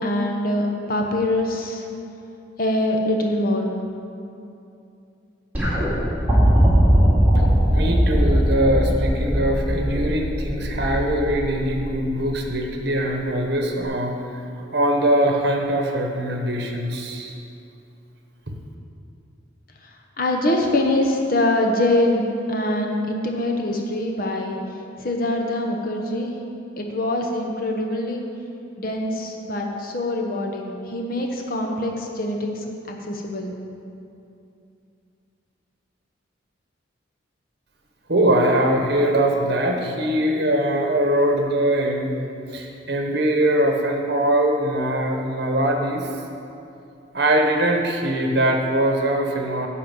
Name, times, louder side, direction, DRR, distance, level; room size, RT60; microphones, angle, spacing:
voice 1, 0.0-1.8 2.6-3.7 20.2-24.6 25.0-26.3 26.8-28.2 28.8-33.5, left 1 dB, 45° left, 1 dB, 1.0 m, -24 dB
sound 1, 5.5-12.7 13.8-13.9, equal, 10° right, 2.4 m, -20 dB
voice 2, 7.7-14.1 14.7-17.3 18.5-18.6 38.1-42.1 42.5-46.1 47.1-49.7, right 1 dB, 55° right, 2 dB, 1.0 m, -22 dB
11.0 x 4.3 x 7.6 m, 2.7 s
head